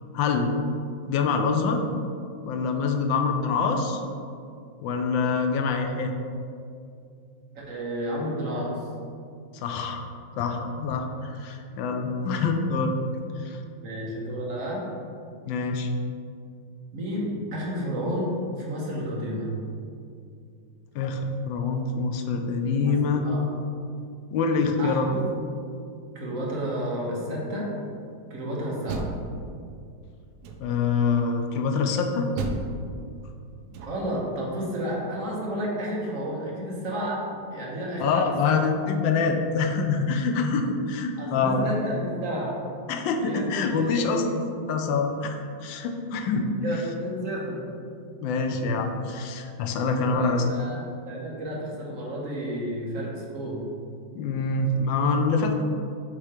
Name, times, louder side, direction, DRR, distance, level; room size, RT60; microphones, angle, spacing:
voice 1, 0.1-0.5 1.0-1.8 2.4-4.0 4.8-6.1 9.6-10.0 10.4-13.0 13.4-13.6 15.5-15.9 20.9-23.2 24.3-25.1 30.6-32.3 38.0-41.7 42.9-44.4 44.7-46.5 48.2-50.4 54.1-55.6, left 4 dB, 75° left, 5 dB, 1.3 m, -25 dB
voice 2, 7.5-8.8 12.2-12.5 13.8-14.8 16.9-19.5 22.8-23.5 24.8-25.2 26.1-27.7 28.3-29.1 33.9-37.2 37.5-38.6 41.2-42.6 43.2-44.2 46.6-47.6 49.8-53.6, equal, 45° right, -4 dB, 1.3 m, -31 dB
Door, 28.6-29.9 30.4-31.0 32.3-34.2, right 3 dB, 70° right, 1.0 m, -35 dB
7.5 x 3.1 x 4.9 m, 2.4 s
omnidirectional pair, 2.1 m